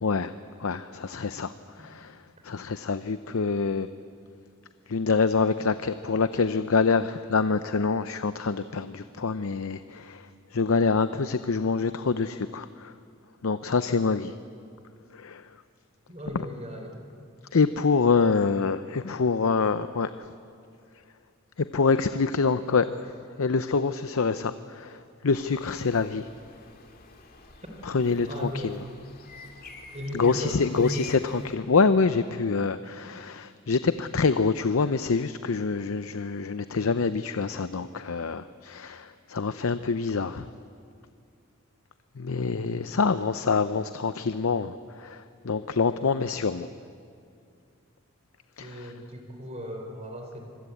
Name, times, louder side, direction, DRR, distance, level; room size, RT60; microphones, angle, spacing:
voice 1, 0.0-0.3 0.6-3.9 4.9-12.9 13.4-14.3 15.1-15.5 16.3-16.4 17.5-20.3 21.6-26.3 27.8-28.8 30.1-40.5 42.2-46.7 48.6-48.9, left 4 dB, 75° left, 12 dB, 0.6 m, -26 dB
voice 2, 16.1-17.0 28.3-28.8 29.9-31.2 42.4-42.6 48.6-50.4, equal, 30° right, 3 dB, 3.8 m, -36 dB
sound 1, 25.3-31.6, left 4 dB, 45° left, 2.3 m, -49 dB
25.5 x 20.5 x 8.5 m, 2.4 s
head